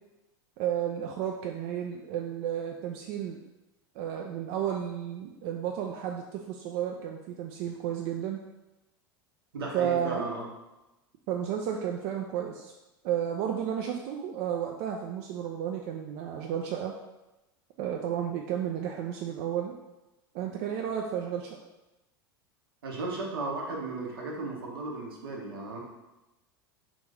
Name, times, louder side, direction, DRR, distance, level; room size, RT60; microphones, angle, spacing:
voice 1, 0.6-3.4 4.0-8.4 9.7-10.3 11.3-12.7 13.0-16.9 17.8-19.7 20.3-21.6, right 9 dB, 50° right, 1 dB, 0.3 m, -32 dB
voice 2, 9.5-10.5 22.8-25.8, right 3 dB, 75° right, -1 dB, 0.8 m, -35 dB
3.4 x 2.5 x 3.2 m, 1.0 s
figure-of-eight pair, 80°, 13 cm